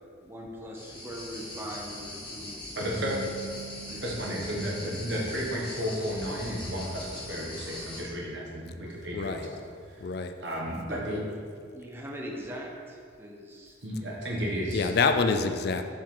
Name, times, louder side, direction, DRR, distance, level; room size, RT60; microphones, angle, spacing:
voice 1, 0.2-2.6 3.0-3.1 3.8-4.0 10.9-11.2 11.7-13.8, equal, 10° right, -1 dB, 0.7 m, -41 dB
sound 1, 0.7-8.0, left 1 dB, 25° left, 1.5 m, -41 dB
voice 2, 2.8-3.2 4.0-10.0 10.4-11.2 13.8-14.9, equal, 65° right, -3 dB, 1.4 m, -33 dB
sound 2, 3.0-6.2, right 4 dB, 70° left, 1.2 m, -46 dB
voice 3, 9.1-9.5 10.0-10.3 14.7-15.8, left 4 dB, 55° left, 7 dB, 0.4 m, -26 dB
7.3 x 4.6 x 3.8 m, 2.1 s
head